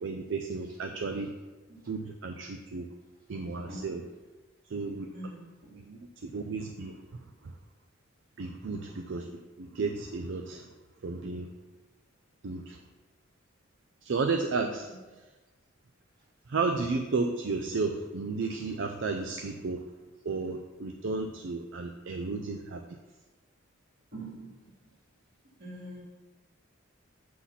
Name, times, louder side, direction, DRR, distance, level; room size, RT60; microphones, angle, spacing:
voice 1, 0.0-1.3 1.9-2.9 3.3-4.0 4.7-5.1 5.7-7.5 8.4-10.7 11.0-11.5 12.4-12.8 14.0-14.9 16.5-19.9 20.2-22.8, right 4 dB, 60° right, 5 dB, 0.4 m, -33 dB
voice 2, 5.1-5.7 14.6-14.7 24.1-24.9 25.6-26.0, right 1 dB, 45° right, -5 dB, 2.4 m, -44 dB
7.6 x 4.1 x 5.7 m, 1.2 s
head